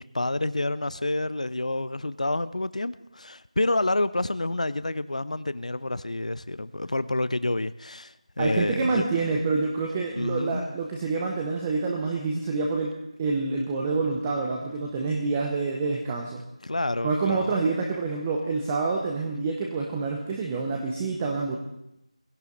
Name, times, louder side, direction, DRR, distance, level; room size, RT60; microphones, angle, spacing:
voice 1, 0.0-9.0 10.1-10.7 16.6-17.5, left 2 dB, 75° left, 0.6 m, -28 dB
voice 2, 8.4-16.4 17.0-21.6, right 4 dB, 15° right, 0.8 m, -27 dB
19.5 x 16.5 x 3.9 m
figure-of-eight pair, 170°, 4 cm